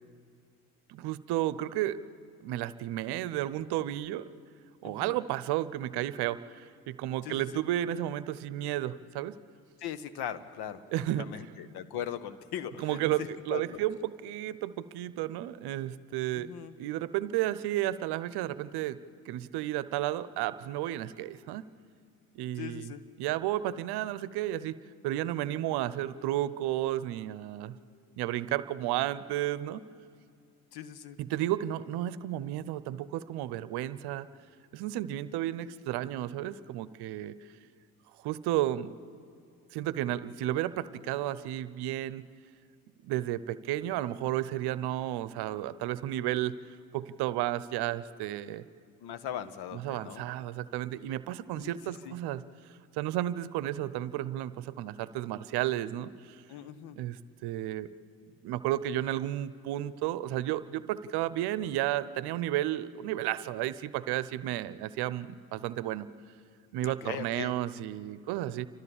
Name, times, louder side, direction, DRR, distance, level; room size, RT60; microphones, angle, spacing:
voice 1, 0.9-2.0 2.4-4.2 4.8-6.4 6.9-9.3 10.9-11.5 12.8-16.5 16.8-19.0 19.3-21.6 22.4-22.9 23.2-24.8 25.0-27.7 28.2-29.8 31.2-34.3 34.7-37.3 38.2-38.9 39.7-42.2 43.0-46.5 46.9-48.6 49.7-52.4 53.0-56.1 57.0-57.2 57.4-57.9 58.4-66.1 66.7-68.7, right 13 dB, 65° right, 16 dB, 0.8 m, -32 dB
voice 2, 4.8-5.1 7.2-7.4 9.8-13.8 16.3-16.7 22.6-23.0 30.7-31.2 49.0-50.3 51.5-51.8 52.0-52.1 56.5-57.0 66.8-67.5, left 9 dB, 60° left, 12 dB, 1.3 m, -40 dB
29.5 x 13.5 x 7.2 m, 2.3 s
hypercardioid pair, 65°, 43 cm